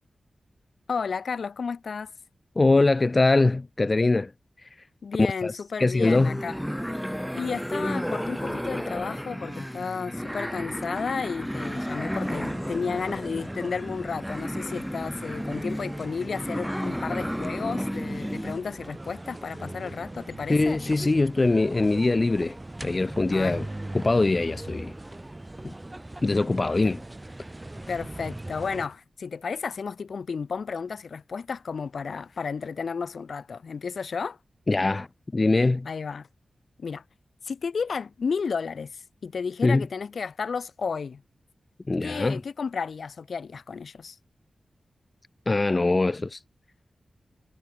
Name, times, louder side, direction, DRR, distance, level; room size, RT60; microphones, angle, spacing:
voice 1, 0.9-2.1 5.0-6.6 7.3-20.8 23.3-23.6 26.8-27.0 27.9-34.4 35.8-36.3 36.8-37.0 37.4-41.2 42.0-44.2, left 5 dB, 70° left, 1.2 m, -32 dB
voice 2, 2.6-4.3 5.2-5.5 5.8-6.4 20.5-22.6 22.8-23.7 23.9-24.9 25.6-25.7 26.2-27.0 34.7-35.1 35.3-35.9 39.6-39.9 41.9-42.4 45.5-46.4, left 2 dB, 30° left, 0.3 m, -22 dB
sound 1, 6.0-18.6, equal, ahead, 0.8 m, -32 dB
sound 2, 11.7-28.9, right 1 dB, 15° right, 2.6 m, -40 dB
wide cardioid pair, 135°, 0 cm